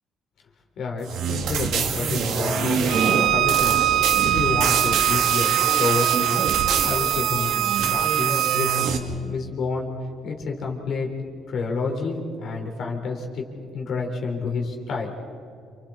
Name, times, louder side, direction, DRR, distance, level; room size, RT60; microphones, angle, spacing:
voice 1, 0.8-3.8 4.2-6.4 6.8-8.8 9.1-9.9 10.2-11.1 11.5-13.4 13.7-15.1, left 4 dB, 50° left, 1 dB, 3.6 m, -29 dB
sound 1, 1.1-9.0, right 6 dB, 75° right, 2.5 m, -25 dB
Bowed string instrument, 2.9-8.9, right 13 dB, 60° right, 0.7 m, -23 dB
28.5 x 28.5 x 4.3 m, 2.7 s
cardioid pair, 160°, 0 cm